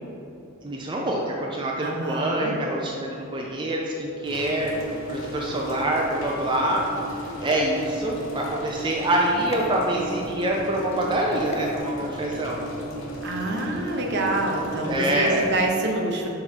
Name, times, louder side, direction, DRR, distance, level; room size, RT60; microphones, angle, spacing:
voice 1, 0.6-4.7 5.1-12.6 14.9-15.5, right 1 dB, 25° right, -2 dB, 0.4 m, -26 dB
voice 2, 1.8-2.6 13.2-16.3, right 2 dB, 55° right, 1 dB, 0.8 m, -27 dB
sound 1, 4.2-15.7, left 1 dB, 80° left, 0.9 m, -35 dB
sound 2, 7.4-8.5 9.5-9.7 11.4-11.7, left 2 dB, 30° left, 0.5 m, -35 dB
6.0 x 3.9 x 4.4 m, 2.8 s
head